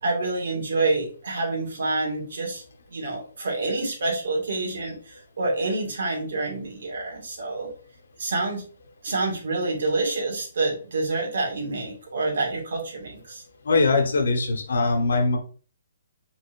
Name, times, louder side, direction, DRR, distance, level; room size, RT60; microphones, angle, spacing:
voice 1, 0.0-2.6 2.9-7.7 8.2-8.6 9.0-13.4, right 2 dB, 70° right, 0 dB, 2.0 m, -27 dB
voice 2, 13.6-15.4, left 3 dB, 75° left, 4 dB, 1.3 m, -21 dB
4.9 x 4.0 x 2.6 m, 0.40 s
hypercardioid pair, 155°, 0 cm